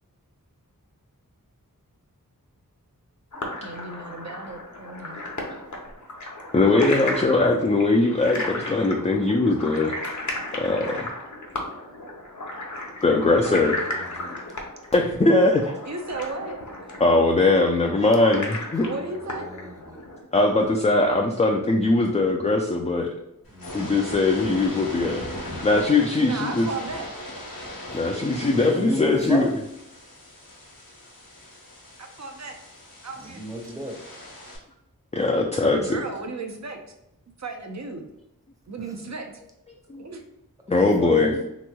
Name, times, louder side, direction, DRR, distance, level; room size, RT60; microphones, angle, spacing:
sound 1, 3.3-20.2, left 2 dB, 55° left, 0.7 m, -35 dB
voice 1, 3.6-5.2 15.9-16.7 18.8-19.5 26.2-27.1 32.0-32.6 33.0-33.4 35.6-36.9 37.4-38.1 38.7-39.3 39.9-40.2, right 3 dB, 50° right, 4 dB, 0.6 m, -35 dB
voice 2, 6.5-9.9 10.6-11.0 13.0-13.8 14.9-15.7 17.0-18.8 20.3-23.1 23.7-25.3 25.6-26.7 27.9-29.4 35.1-36.0 39.9-40.0 40.7-41.3, left 2 dB, 20° left, 0 dB, 0.3 m, -20 dB
voice 3, 13.1-14.4 18.8-19.0 19.3-20.0 23.5-24.0 24.3-25.3 27.9-28.0 28.5-29.6 33.2-34.0 38.8-38.9 40.7-41.5, equal, 10° right, 0 dB, 0.7 m, -35 dB
sound 2, 23.4-34.6, left 1 dB, 80° left, 1.1 m, -39 dB
3.4 x 3.0 x 2.2 m, 0.85 s
wide cardioid pair, 40°, 35 cm